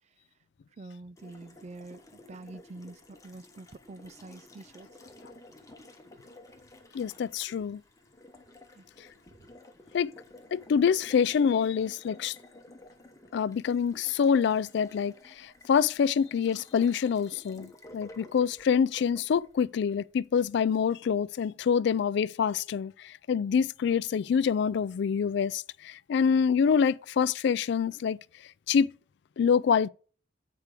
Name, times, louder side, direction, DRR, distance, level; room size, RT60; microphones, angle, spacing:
voice 1, 0.8-4.9 8.7-8.9, right 2 dB, 35° right, 0.4 m, -46 dB
Water tap faucet, 1.2-20.3, left 2 dB, 20° left, 1.1 m, -53 dB
voice 2, 6.9-7.8 9.9-10.1 10.5-12.4 13.3-28.2 28.7-28.9 29.4-29.9, left 7 dB, 65° left, 0.3 m, -26 dB
8.2 x 4.7 x 4.9 m
head